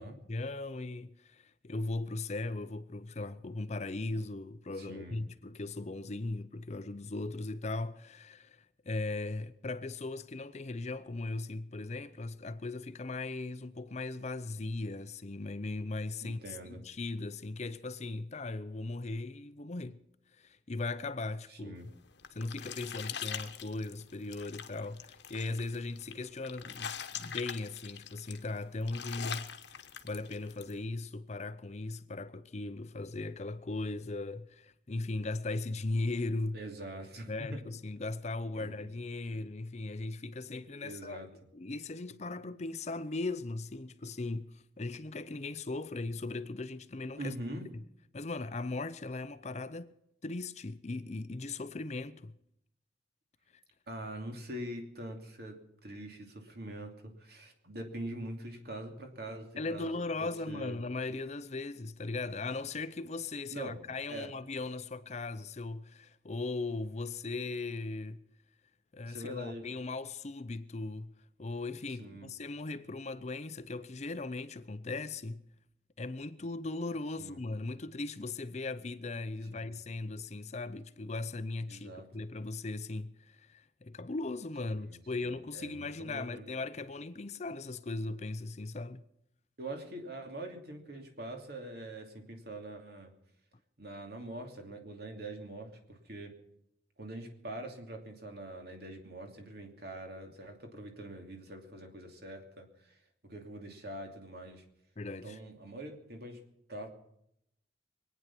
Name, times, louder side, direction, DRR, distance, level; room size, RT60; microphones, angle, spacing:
voice 1, 0.0-20.0 20.4-21.8 22.3-29.5 30.0-36.6 37.3-41.2 41.5-47.3 47.7-47.8 48.1-49.9 50.2-52.3 59.6-68.2 68.9-71.1 71.4-75.4 76.0-89.0 105.0-105.4, left 3 dB, 40° left, 0.6 m, -38 dB
voice 2, 4.8-5.2 16.2-16.8 21.5-21.9 36.5-37.6 38.5-38.8 40.8-41.3 47.2-47.7 53.9-55.6 55.8-60.8 63.5-63.8 64.1-64.3 69.0-69.7 72.0-72.3 77.2-77.4 79.5-79.7 81.7-82.1 84.6-86.5 89.6-93.1 93.8-96.3 97.0-103.0 103.2-104.6 105.2-106.4 106.7-106.9, right 1 dB, 55° right, 2.8 m, -44 dB
sound 1, 21.8-30.7, left 8 dB, 65° left, 1.1 m, -43 dB
24.0 x 9.4 x 6.0 m
head